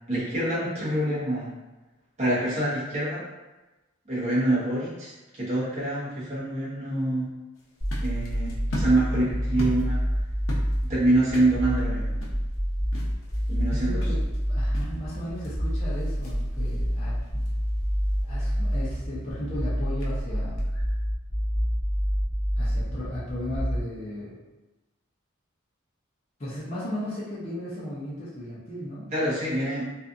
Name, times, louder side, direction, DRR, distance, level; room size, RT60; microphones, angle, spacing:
voice 1, 0.1-1.5 2.2-3.2 4.1-7.3 8.0-10.0 10.9-12.2 13.5-14.0 29.1-29.9, right 1 dB, 30° right, -9 dB, 0.9 m, -26 dB
sound 1, 7.5-21.1, equal, 75° left, 0.6 m, -42 dB
sound 2, 7.8-23.8, equal, 5° right, 1.0 m, -27 dB
voice 2, 9.2-9.7 13.7-14.2 14.5-17.4 18.2-20.7 22.6-24.4 26.4-29.1, left 1 dB, 30° left, -10 dB, 0.6 m, -35 dB
2.6 x 2.4 x 2.4 m, 1.1 s
head